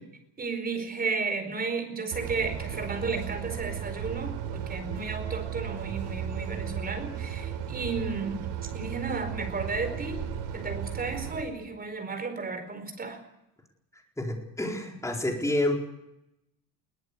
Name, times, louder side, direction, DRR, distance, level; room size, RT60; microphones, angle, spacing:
voice 1, 0.4-8.4 8.7-10.2 10.5-13.2, right 4 dB, 20° right, 7 dB, 4.6 m, -33 dB
sound 1, 2.1-11.4, right 8 dB, 70° right, 4.0 m, -35 dB
voice 2, 14.2-15.8, left 1 dB, 5° left, 1 dB, 4.5 m, -28 dB
22.0 x 18.0 x 8.4 m, 0.85 s
cardioid pair, 140°, 43 cm